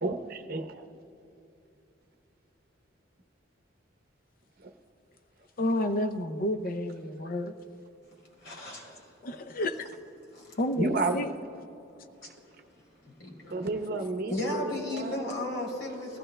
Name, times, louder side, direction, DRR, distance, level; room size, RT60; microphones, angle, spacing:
voice 1, 0.0-0.9 4.6-4.7 10.8-11.2 13.5-15.3, right 2 dB, 50° right, 6 dB, 0.8 m, -31 dB
voice 2, 5.6-7.5 8.5-8.7 9.2-9.9 10.6-11.3, left 1 dB, 45° left, 9 dB, 0.5 m, -30 dB
voice 3, 8.4-9.1 10.3-10.6 12.2-12.3 13.0-13.6 14.3-16.2, left 1 dB, 70° left, -1 dB, 3.4 m, -35 dB
20.5 x 15.0 x 2.2 m, 2.8 s
head